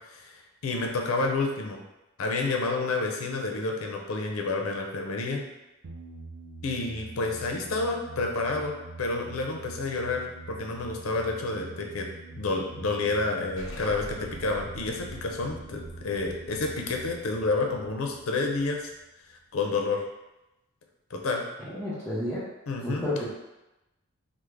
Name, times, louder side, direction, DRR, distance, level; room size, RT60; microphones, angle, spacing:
voice 1, 0.6-1.8 2.2-5.4 6.6-12.1 12.4-18.9 19.5-20.0 21.1-21.4 22.7-23.0, left 3 dB, 75° left, 2 dB, 0.5 m, -29 dB
sound 1, 5.8-19.1, right 3 dB, 80° right, 0.5 m, -45 dB
Explosion, 13.6-19.0, left 1 dB, 60° left, 0.8 m, -46 dB
voice 2, 21.7-22.4 22.8-23.2, left 1 dB, 10° left, -13 dB, 0.6 m, -30 dB
3.4 x 2.0 x 3.3 m, 0.97 s
head